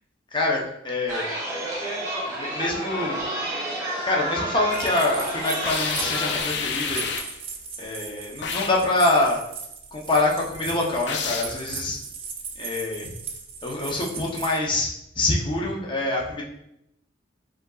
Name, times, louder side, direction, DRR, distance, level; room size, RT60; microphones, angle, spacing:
voice 1, 0.3-1.3 2.3-3.2 4.0-7.1 7.8-9.4 9.9-12.0 12.6-13.1 13.6-14.9 15.2-16.4, left 2 dB, 25° left, -2 dB, 0.7 m, -25 dB
Chatter, 1.1-6.4, right 1 dB, 15° right, 1.0 m, -30 dB
sound 1, 4.7-14.6, right 6 dB, 30° right, 0.4 m, -38 dB
sound 2, 5.6-7.4 8.4-8.9 11.1-11.6, left 6 dB, 65° left, 0.4 m, -29 dB
4.9 x 3.8 x 2.4 m, 0.80 s
head